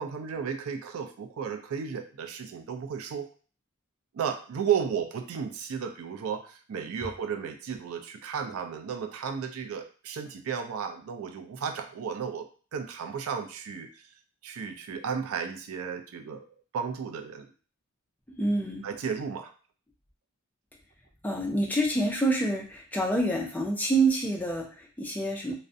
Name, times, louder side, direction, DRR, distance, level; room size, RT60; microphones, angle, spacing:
voice 1, 0.0-3.3 4.1-14.0 14.4-16.4 16.7-17.5 18.8-19.5, right 7 dB, 75° right, 6 dB, 0.3 m, -34 dB
voice 2, 18.3-18.8 21.2-25.5, right 2 dB, 5° left, 0 dB, 0.3 m, -27 dB
2.4 x 2.1 x 2.5 m, 0.39 s
head